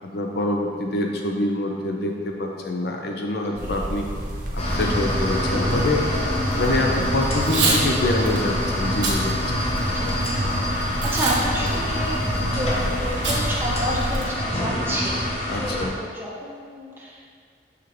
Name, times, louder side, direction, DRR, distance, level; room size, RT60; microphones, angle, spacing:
voice 1, 0.0-4.1 4.5-6.0 6.6-9.5 15.5-16.0, left 2 dB, 60° left, 1 dB, 0.6 m, -26 dB
voice 2, 3.4-3.7 6.5-6.9 9.9-10.0 10.6-12.2 12.5-15.2 15.6-17.3, equal, 10° right, -5 dB, 0.9 m, -30 dB
sound 1, 3.6-14.2, equal, 45° right, 0.8 m, -32 dB
sound 2, 4.6-15.9, equal, 35° left, 0.9 m, -25 dB
Packing tape duct tape / Tearing, 7.3-7.8 8.3-8.4 8.9-9.2 9.7-10.3 11.0-11.4 11.7-11.8 13.2-13.4 13.8-13.9 14.1-14.5, right 3 dB, 85° right, 1.2 m, -24 dB
6.7 x 4.9 x 3.1 m, 2.1 s
head